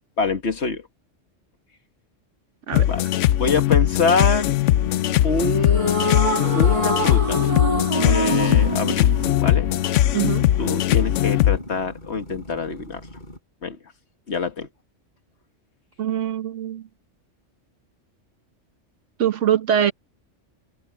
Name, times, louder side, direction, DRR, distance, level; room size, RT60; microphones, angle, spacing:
voice 1, 0.2-0.9 2.9-3.0 3.4-4.6 5.2-7.4 8.0-9.1 9.4-9.7 10.6-13.0 13.6-13.8 14.3-14.7, left 4 dB, 60° left, 1.8 m, -25 dB
sound 1, 2.7-11.6, left 13 dB, 75° left, 0.9 m, -20 dB
sound 2, 4.7-13.4, left 1 dB, 40° left, 6.0 m, -41 dB
sound 3, 5.7-10.1, right 1 dB, 25° right, 1.9 m, -25 dB
voice 2, 10.1-10.5 16.0-16.8 19.2-19.9, right 10 dB, 75° right, 1.3 m, -22 dB
omnidirectional pair, 1.3 m